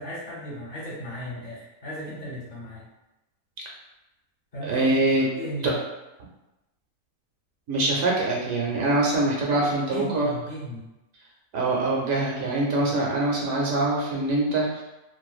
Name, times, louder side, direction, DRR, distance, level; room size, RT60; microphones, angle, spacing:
voice 1, 0.0-2.9 4.5-4.9 5.4-5.8 9.5-10.9, equal, 45° left, -8 dB, 1.1 m, -36 dB
voice 2, 4.6-5.3 5.6-5.7 7.7-10.3 11.5-14.8, right 2 dB, 75° right, -3 dB, 0.9 m, -24 dB
2.5 x 2.2 x 2.3 m, 0.98 s
omnidirectional pair, 1.5 m